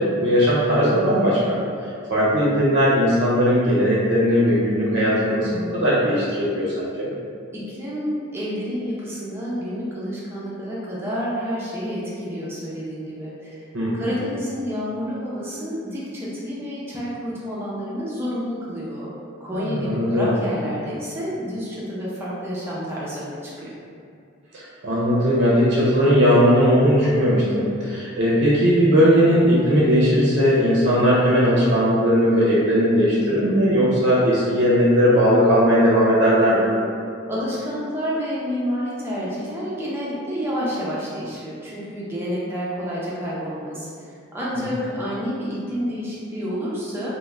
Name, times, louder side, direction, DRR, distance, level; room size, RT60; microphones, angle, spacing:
voice 1, 0.0-1.5 2.1-7.1 13.7-14.1 19.5-20.4 24.5-36.7 44.6-44.7, equal, 60° right, -8 dB, 0.5 m, -18 dB
voice 2, 7.5-13.6 13.9-19.1 19.4-23.7 37.3-43.9 44.3-47.1, equal, 10° right, -7 dB, 0.5 m, -29 dB
2.4 x 2.0 x 3.1 m, 2.4 s
head